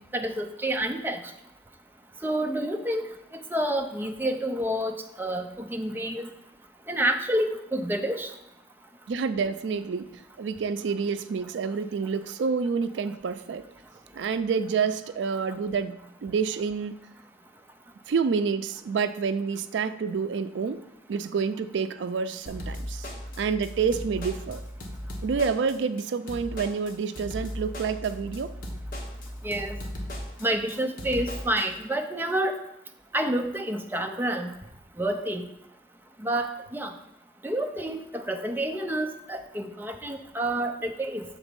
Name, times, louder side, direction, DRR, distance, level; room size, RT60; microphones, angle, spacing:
voice 1, 0.1-1.2 2.2-3.1 3.5-6.3 6.9-8.3 29.4-29.8 30.4-32.6 33.1-34.5 35.0-35.4 36.2-36.9 37.4-41.2, right 1 dB, 10° right, 0.5 m, -28 dB
voice 2, 9.1-13.6 14.1-17.0 18.1-20.8 21.1-23.1 23.4-24.6 25.2-28.5, right 5 dB, 85° right, 0.4 m, -28 dB
sound 1, 22.5-31.6, equal, 50° left, 1.2 m, -37 dB
7.3 x 3.9 x 5.2 m
head